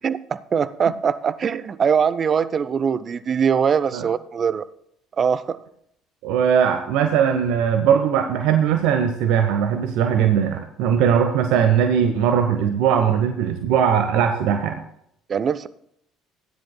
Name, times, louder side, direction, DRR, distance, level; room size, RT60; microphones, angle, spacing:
voice 1, 0.0-4.6 5.2-5.6 15.3-15.7, right 7 dB, 40° right, 15 dB, 0.6 m, -22 dB
voice 2, 6.2-14.8, right 8 dB, 65° right, 6 dB, 0.9 m, -19 dB
16.5 x 10.5 x 2.3 m, 0.71 s
figure-of-eight pair, 55°, 0 cm